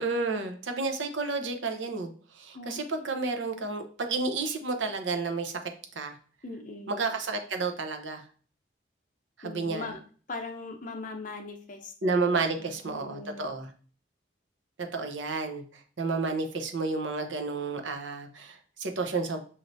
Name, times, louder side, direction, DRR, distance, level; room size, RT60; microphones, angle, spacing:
voice 1, 0.0-5.5 6.0-6.2 6.9-8.2 9.4-9.9 12.0-13.7 14.9-19.4, right 3 dB, 75° right, 5 dB, 0.7 m, -31 dB
voice 2, 6.4-7.0 9.4-10.0 10.3-11.9 12.6-13.5, left 3 dB, 40° left, 3 dB, 0.7 m, -40 dB
5.6 x 3.1 x 2.6 m, 0.42 s
head